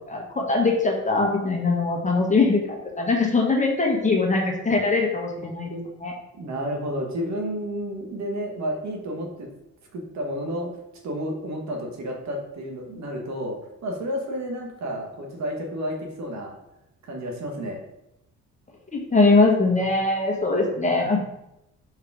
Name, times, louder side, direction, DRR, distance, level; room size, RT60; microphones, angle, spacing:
voice 1, 0.0-6.1 18.9-21.2, left 3 dB, 25° left, 0 dB, 1.5 m, -22 dB
voice 2, 6.3-9.5 9.9-10.7 11.0-13.6 13.8-16.5 17.0-17.8 21.0-21.2, equal, 65° right, 1 dB, 1.4 m, -31 dB
5.5 x 4.8 x 3.6 m, 0.85 s
cardioid pair, 90°, 30 cm